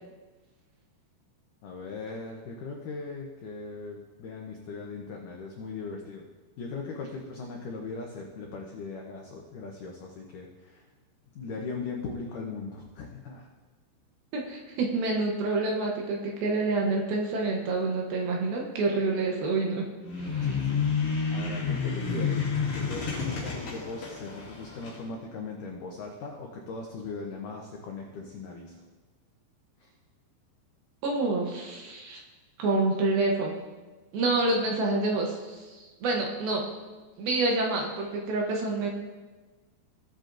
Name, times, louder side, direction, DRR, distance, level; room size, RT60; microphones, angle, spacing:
voice 1, 1.6-6.3 6.6-10.8 11.4-13.5 20.4-20.9 21.3-22.4 22.7-28.8 29.8-29.9, left 4 dB, 85° left, 0 dB, 1.8 m, -39 dB
voice 2, 14.3-19.8 20.3-20.5 31.0-32.2 32.6-33.5 34.1-36.7 37.2-38.9, right 3 dB, 70° right, 0 dB, 2.5 m, -27 dB
sound 1, 20.0-25.0, left 5 dB, 45° left, 2.9 m, -30 dB
17.5 x 7.5 x 2.6 m, 1.3 s
omnidirectional pair, 5.0 m